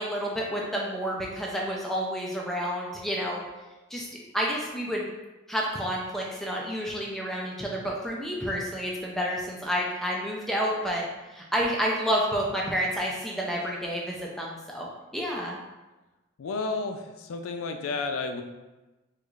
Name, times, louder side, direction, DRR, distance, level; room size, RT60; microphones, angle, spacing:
voice 1, 0.0-3.4 3.9-4.1 4.3-5.0 5.5-14.9 15.1-15.6, equal, ahead, -3 dB, 0.4 m, -29 dB
voice 2, 16.4-18.4, left 3 dB, 80° left, 5 dB, 0.4 m, -31 dB
4.5 x 2.4 x 2.3 m, 1.1 s
head